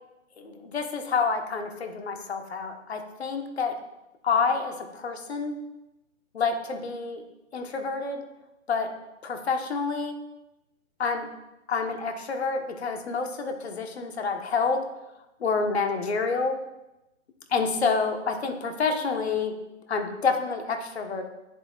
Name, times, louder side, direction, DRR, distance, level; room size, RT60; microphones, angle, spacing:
voice 1, 0.4-3.8 4.2-5.5 6.3-7.2 7.5-8.3 8.7-8.9 9.2-10.2 11.0-11.3 11.7-14.9 15.4-16.6 17.5-21.2, left 4 dB, 50° left, 5 dB, 1.5 m, -28 dB
14.0 x 11.0 x 2.5 m, 0.95 s
hypercardioid pair, 165°, 40 cm